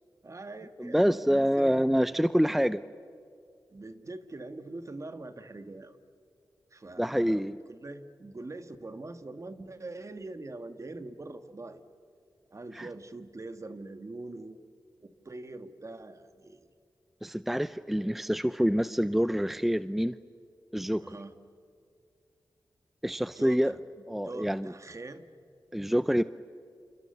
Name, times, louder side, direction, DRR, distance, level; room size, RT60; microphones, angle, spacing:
voice 1, 0.2-1.9 3.7-6.0 6.7-11.8 12.5-14.6 15.0-16.7 21.0-21.3 23.1-23.8 24.2-25.3, right 2 dB, 40° right, 9 dB, 1.9 m, -43 dB
voice 2, 0.8-2.8 7.0-7.6 12.7-12.9 17.2-20.1 20.7-21.2 23.0-23.7 24.1-24.7 25.7-26.2, equal, 5° right, 14 dB, 0.6 m, -26 dB
30.0 x 28.5 x 6.9 m, 2.4 s
cardioid pair, 50°, 8 cm